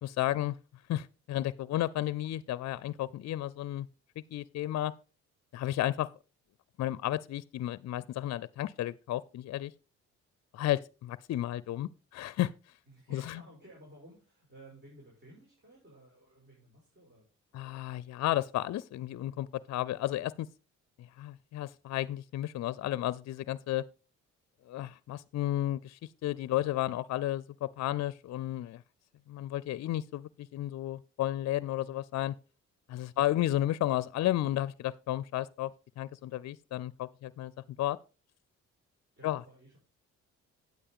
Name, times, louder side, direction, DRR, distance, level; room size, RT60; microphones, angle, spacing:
voice 1, 0.0-0.5 0.9-3.9 4.3-4.9 5.5-6.1 6.8-9.7 10.5-12.5 13.1-13.4 17.5-20.5 21.0-23.8 24.7-28.8 29.3-32.3 32.9-35.7 36.0-37.5 37.8-38.0 39.2-39.4, left 14 dB, 60° left, 0.5 m, -33 dB
voice 2, 12.9-17.3 17.6-18.2 31.7-32.0 33.0-33.3 39.2-39.8, right 1 dB, 35° right, 5.8 m, -56 dB
9.4 x 8.5 x 3.7 m
cardioid pair, 90°, 30 cm